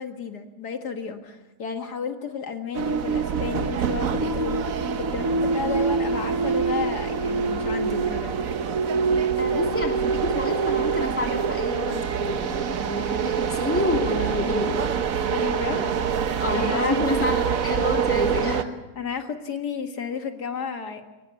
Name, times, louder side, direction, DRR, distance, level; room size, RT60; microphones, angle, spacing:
voice 1, 0.0-4.7 5.0-8.5 15.3-15.9 16.5-17.5 18.9-21.1, left 6 dB, 75° left, 6 dB, 2.3 m, -32 dB
sound 1, 2.7-18.6, right 6 dB, 60° right, 1.4 m, -25 dB
voice 2, 9.4-14.9 15.7-16.0 16.4-18.8, left 1 dB, 5° left, 1 dB, 3.0 m, -28 dB
23.0 x 20.0 x 8.3 m, 1.1 s
omnidirectional pair, 1.8 m